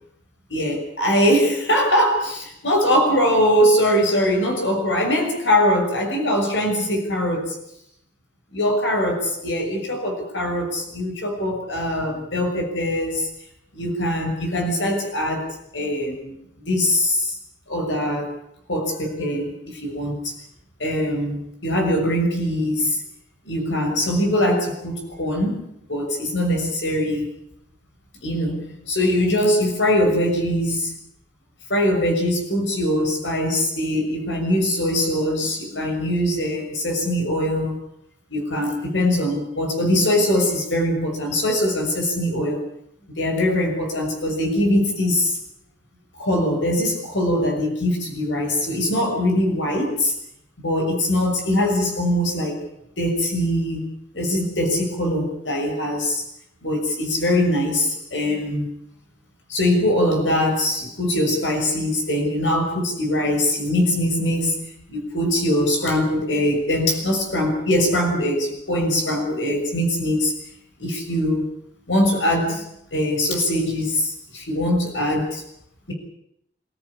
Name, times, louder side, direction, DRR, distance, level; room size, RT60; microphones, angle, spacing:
voice 1, 0.5-7.6 8.5-13.3 13.7-15.5 15.7-17.4 17.7-18.3 18.7-20.3 20.8-23.0 23.4-27.3 28.2-30.9 31.7-37.8 38.3-42.6 43.2-45.4 46.1-50.1 50.6-52.6 53.0-53.9 54.1-56.2 56.6-58.7 59.5-64.6 64.9-70.3 70.8-71.5 71.9-75.4, left 1 dB, 85° left, 3 dB, 6.5 m, -22 dB
27.0 x 14.5 x 10.0 m, 0.76 s
head